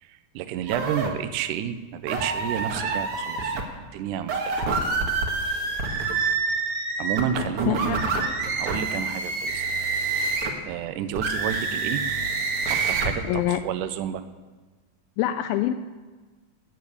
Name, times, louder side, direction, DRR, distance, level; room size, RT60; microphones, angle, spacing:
voice 1, 0.0-3.6 3.9-4.7 7.0-8.0 8.6-9.6 10.7-12.0 12.7-14.2, right 9 dB, 75° right, 11 dB, 2.0 m, -30 dB
sound 1, 0.7-1.1 2.1-3.6 4.2-10.6 11.1-13.1, right 4 dB, 55° right, 1.9 m, -27 dB
voice 2, 7.7-8.0 13.2-13.6 15.2-15.7, left 13 dB, 85° left, 8 dB, 2.4 m, -25 dB
13.5 x 6.8 x 8.6 m, 1.3 s
omnidirectional pair, 4.2 m